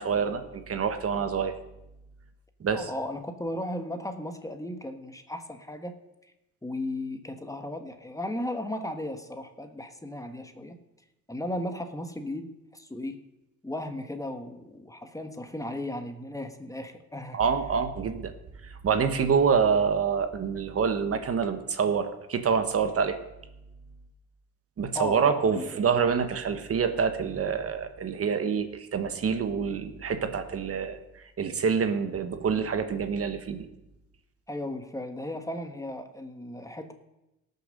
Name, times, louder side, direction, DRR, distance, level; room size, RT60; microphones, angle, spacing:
voice 1, 0.0-1.5 2.6-2.9 17.3-18.3 18.6-23.2 24.8-33.7, right 6 dB, 50° right, 8 dB, 1.4 m, -26 dB
voice 2, 2.7-5.9 6.2-6.3 6.6-10.8 11.3-13.2 13.6-17.4 24.9-25.7 34.5-36.9, left 1 dB, 10° left, 7 dB, 1.4 m, -35 dB
17.5 x 6.8 x 6.7 m, 0.94 s
cardioid pair, 90°, 30 cm